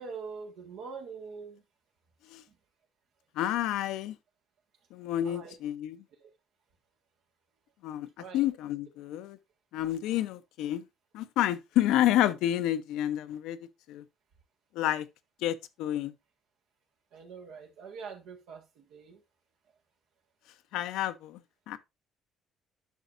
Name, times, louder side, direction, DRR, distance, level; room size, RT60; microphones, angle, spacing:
voice 1, 0.0-1.6 5.2-5.5 6.2-6.3 8.2-8.4 17.1-19.2, right 5 dB, 85° right, 1.6 m, -44 dB
voice 2, 3.4-4.2 4.9-6.0 7.8-8.1 8.3-9.4 9.7-10.9 11.1-13.6 13.9-14.0 14.7-15.1 15.4-16.1 20.7-21.4 21.7-21.8, left 12 dB, 85° left, 0.6 m, -29 dB
10.5 x 5.8 x 2.5 m
supercardioid pair, 80°, 0 cm